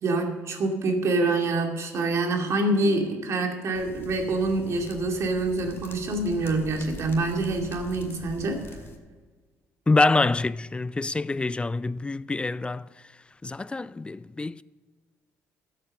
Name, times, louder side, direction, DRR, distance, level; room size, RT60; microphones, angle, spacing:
voice 1, 0.0-8.8, right 2 dB, 60° right, 2.4 m, -26 dB
Small Bonfire, 3.7-9.0, left 2 dB, 45° left, 2.2 m, -44 dB
voice 2, 9.9-12.9 13.4-14.6, left 3 dB, 20° left, 0.4 m, -25 dB
13.0 x 8.3 x 6.6 m
cardioid pair, 90°, 6 cm